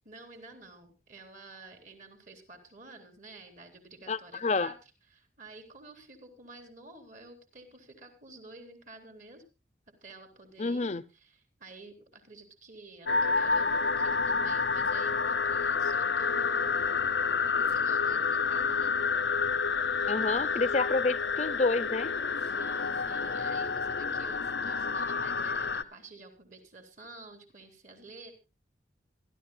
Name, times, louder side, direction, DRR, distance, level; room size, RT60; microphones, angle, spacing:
voice 1, 0.0-4.8 5.1-9.5 10.0-17.0 17.6-19.1 20.2-20.6 22.4-28.3, right 3 dB, 45° right, 4.0 m, -50 dB
voice 2, 4.1-4.7 10.6-11.0 20.1-22.1, left 3 dB, 40° left, 0.7 m, -29 dB
sound 1, 13.1-25.8, left 5 dB, 85° left, 0.9 m, -29 dB
26.0 x 12.0 x 2.3 m
head